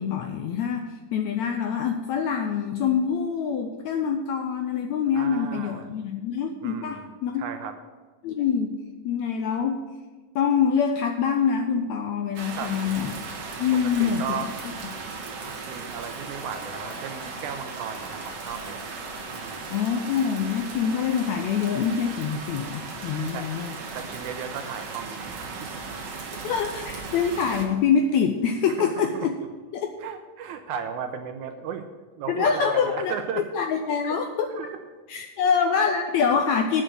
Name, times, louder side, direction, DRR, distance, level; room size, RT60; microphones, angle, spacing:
voice 1, 0.0-7.4 8.2-8.7 9.0-9.8 10.3-13.2 13.6-14.4 19.7-23.8 26.4-29.3 29.7-29.9 32.3-34.5 35.1-36.8, left 6 dB, 85° left, 5 dB, 1.6 m, -25 dB
voice 2, 5.1-5.9 6.6-7.8 12.5-12.8 13.8-14.5 15.5-18.8 19.3-19.7 23.3-23.5 23.9-25.6 26.3-26.5 28.8-29.3 30.0-31.9 32.2-33.5 34.6-34.7, right 7 dB, 75° right, 7 dB, 1.9 m, -35 dB
Cheering / Crowd, 12.0-28.8, left 2 dB, 60° left, 2.8 m, -50 dB
sound 1, 12.3-27.6, right 4 dB, 55° right, 2.3 m, -37 dB
8.7 x 6.7 x 7.7 m, 1.3 s
omnidirectional pair, 3.8 m